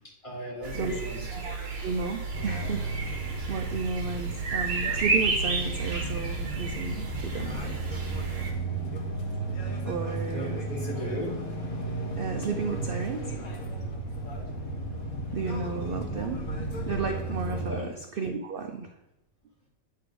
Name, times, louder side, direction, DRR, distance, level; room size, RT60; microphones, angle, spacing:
voice 1, 0.2-1.6 10.1-11.4 17.7-18.0, equal, 20° left, -4 dB, 2.3 m, -37 dB
sound 1, 0.6-8.5, right 4 dB, 45° right, 1.2 m, -32 dB
voice 2, 1.3-8.0 9.8-10.7 12.2-13.3 15.3-18.9, right 4 dB, 70° right, 5 dB, 0.5 m, -33 dB
sound 2, 2.3-17.7, right 2 dB, 70° left, 1.5 m, -34 dB
8.4 x 3.4 x 4.9 m, 0.91 s
omnidirectional pair, 1.5 m